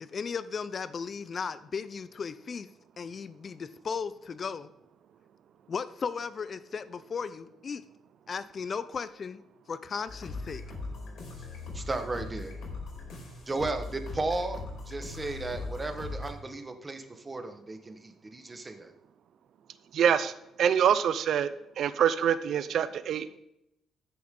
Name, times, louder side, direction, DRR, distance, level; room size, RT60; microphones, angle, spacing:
voice 1, 0.0-2.7 3.0-4.7 5.7-7.8 8.3-9.4 9.7-10.6, left 5 dB, 45° left, 15 dB, 0.5 m, -36 dB
sound 1, 10.1-16.3, left 3 dB, 70° left, 4.8 m, -40 dB
voice 2, 11.7-12.5 13.5-18.9, right 2 dB, 25° right, 7 dB, 1.4 m, -35 dB
voice 3, 19.9-20.3 20.6-21.5 21.8-23.4, right 8 dB, 70° right, 13 dB, 0.5 m, -25 dB
14.5 x 7.0 x 3.8 m, 0.83 s
cardioid pair, 90°, 0 cm